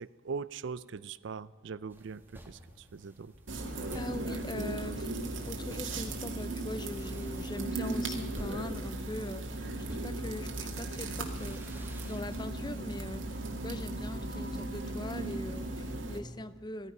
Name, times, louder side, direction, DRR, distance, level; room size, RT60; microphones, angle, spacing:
voice 1, 0.0-3.3, right 5 dB, 65° right, 18 dB, 0.4 m, -41 dB
sound 1, 1.9-13.7, equal, 10° right, 1.6 m, -52 dB
sound 2, 3.5-16.2, right 2 dB, 85° right, 2.1 m, -37 dB
voice 2, 3.9-5.1 5.5-13.4 13.6-16.9, left 1 dB, 25° left, 14 dB, 0.6 m, -41 dB
16.5 x 14.0 x 5.5 m, 1.5 s
head